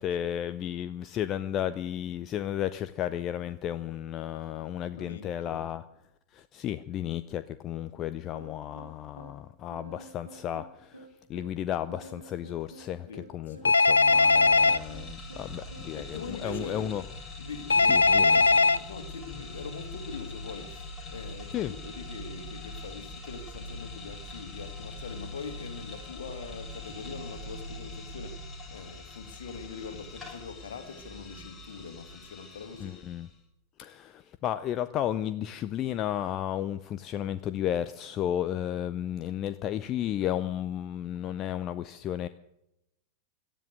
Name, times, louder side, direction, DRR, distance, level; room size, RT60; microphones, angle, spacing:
voice 1, 0.0-5.8 6.3-17.0 17.9-18.4 21.5-21.7 32.8-33.3 33.8-42.3, left 11 dB, 35° left, 14 dB, 0.7 m, -33 dB
voice 2, 4.9-5.6 13.1-13.7 15.9-16.9 17.4-33.0, left 5 dB, 60° left, 6 dB, 2.7 m, -42 dB
sound 1, 8.3-17.0, right 2 dB, 85° right, 3.3 m, -50 dB
Telephone, 13.6-14.8 17.7-18.8, left 3 dB, 75° left, 0.6 m, -20 dB
sound 2, 13.6-33.3, left 1 dB, 15° left, 7.3 m, -43 dB
18.0 x 12.5 x 6.4 m, 0.83 s
figure-of-eight pair, 90°, 0 cm